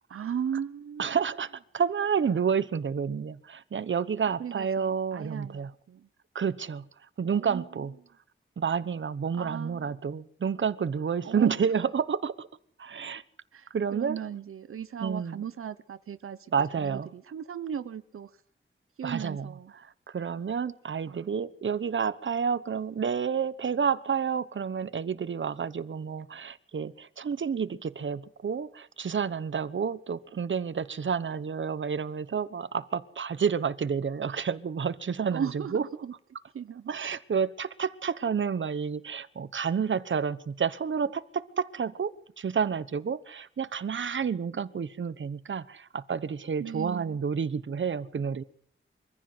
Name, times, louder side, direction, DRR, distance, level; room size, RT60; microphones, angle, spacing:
voice 1, 0.1-1.1 4.4-6.1 7.3-7.6 9.3-10.0 11.2-11.7 13.5-16.5 16.8-18.3 19.0-19.7 21.1-21.3 35.3-36.1 36.5-36.9 46.6-47.2, right 8 dB, 90° right, 0.9 m, -37 dB
voice 2, 1.0-1.5 1.7-5.7 6.3-6.9 7.2-7.9 8.6-12.5 12.8-13.2 13.7-14.2 15.0-15.4 16.5-17.1 19.0-19.5 20.1-35.8 36.9-48.4, right 6 dB, 65° right, 1.1 m, -30 dB
23.5 x 15.0 x 7.9 m
wide cardioid pair, 95°, 21 cm